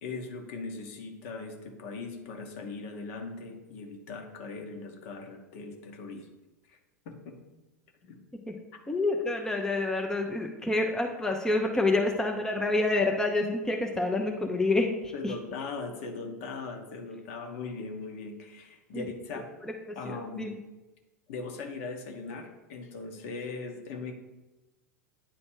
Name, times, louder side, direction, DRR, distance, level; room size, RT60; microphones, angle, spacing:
voice 1, 0.0-6.3 6.7-6.8 7.0-7.3 8.0-8.2 15.1-19.5 19.9-20.6 21.3-24.1, left 4 dB, 55° left, 3 dB, 1.2 m, -39 dB
voice 2, 8.9-15.3 18.9-19.0 19.3-19.4 20.1-20.5, left 2 dB, 5° left, 3 dB, 0.6 m, -28 dB
9.0 x 3.2 x 4.6 m, 1.1 s
figure-of-eight pair, 85°, 9 cm